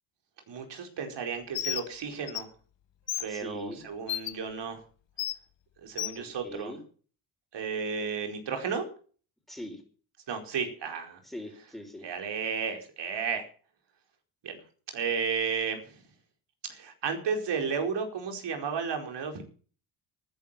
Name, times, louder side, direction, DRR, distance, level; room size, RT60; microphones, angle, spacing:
voice 1, 0.5-2.5 3.2-4.8 5.8-6.7 7.5-8.8 10.3-11.2 12.0-13.4 14.4-14.6 14.9-16.0 16.7-19.4, right 6 dB, 65° right, 5 dB, 4.7 m, -33 dB
Bird, 1.5-1.9 2.3-2.4 3.1-3.3 4.1-4.3 5.2-5.4 6.0-6.2, left 13 dB, 70° left, 1.7 m, -31 dB
voice 2, 3.3-3.8 6.1-6.8 9.5-9.8 11.2-12.1, left 1 dB, ahead, 5 dB, 5.3 m, -41 dB
13.0 x 10.5 x 7.5 m, 0.41 s
cardioid pair, 85°, 46 cm